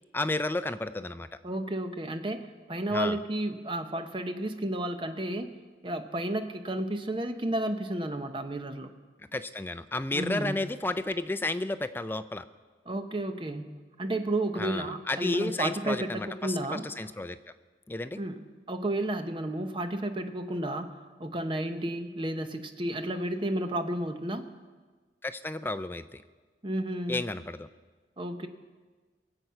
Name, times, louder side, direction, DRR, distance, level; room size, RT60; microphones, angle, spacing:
voice 1, 0.1-1.3 2.9-3.2 9.2-12.4 14.6-17.4 17.9-18.2 25.2-26.2 27.1-27.7, left 2 dB, 10° left, 11 dB, 0.4 m, -32 dB
voice 2, 1.4-5.6 5.8-8.9 10.1-10.6 12.9-16.9 18.2-18.4 18.7-24.5 26.6-27.2 28.2-28.5, right 1 dB, 30° right, 7 dB, 0.8 m, -32 dB
22.5 x 7.8 x 5.7 m, 1.4 s
head